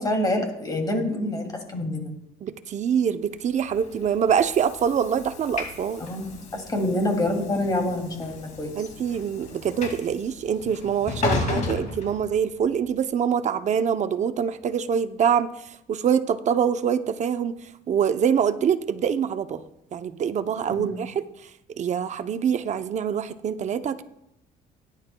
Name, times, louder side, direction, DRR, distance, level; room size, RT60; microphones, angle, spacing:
voice 1, 0.0-2.2 6.0-8.7 20.7-21.0, left 1 dB, 25° left, 2 dB, 2.7 m, -27 dB
voice 2, 2.4-6.0 8.8-15.5 15.9-17.5 17.9-19.6 19.9-21.3 21.8-24.0, right 8 dB, 45° right, 10 dB, 0.7 m, -25 dB
Train / Sliding door, 3.5-12.8, left 3 dB, 45° left, 2.2 m, -34 dB
17.5 x 10.5 x 2.3 m, 0.83 s
cardioid pair, 110°, 17 cm